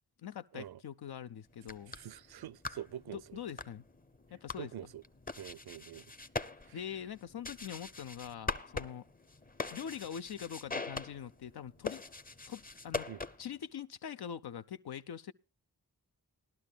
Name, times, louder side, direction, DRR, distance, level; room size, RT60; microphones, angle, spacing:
voice 1, 0.2-1.9 3.1-3.8 4.3-4.7 6.7-9.1 9.7-12.0 12.5-13.1 13.4-15.3, left 9 dB, 75° left, 0.6 m, -43 dB
sound 1, 1.5-13.6, left 3 dB, 25° left, 0.7 m, -43 dB
voice 2, 1.9-3.2 4.6-5.0 5.4-6.0 6.7-6.8 13.1-13.2, right 11 dB, 75° right, 0.5 m, -45 dB
19.5 x 12.0 x 2.3 m
cardioid pair, 55°, 39 cm